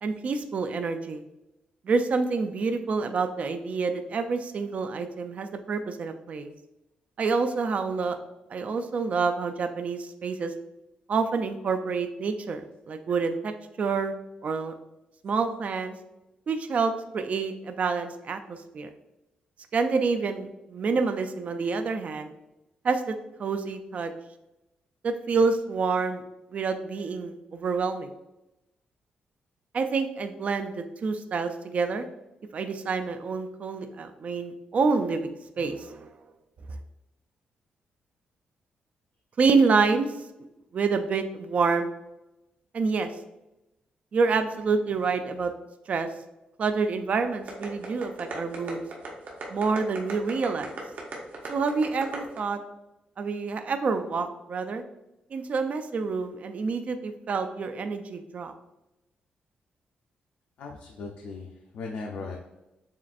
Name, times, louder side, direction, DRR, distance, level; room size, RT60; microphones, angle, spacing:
voice 1, 0.0-1.2 1.8-6.5 7.2-8.2 8.5-10.5 11.1-14.1 14.4-14.7 15.2-15.9 16.5-18.9 19.7-22.3 22.8-23.1 23.4-24.1 25.0-26.2 26.5-28.1 29.7-32.1 32.5-36.1 39.4-40.1 40.7-41.9 42.7-43.1 44.1-45.5 45.9-46.1 46.6-48.8 49.5-50.7 51.5-52.6 53.2-54.8 55.3-58.5, right 4 dB, 45° right, 7 dB, 0.4 m, -27 dB
sound 1, 47.5-52.4, right 4 dB, 70° right, 1.0 m, -37 dB
voice 2, 60.6-62.4, left 4 dB, 85° left, 0 dB, 0.5 m, -38 dB
7.1 x 2.5 x 2.5 m, 0.94 s
cardioid pair, 115°, 3 cm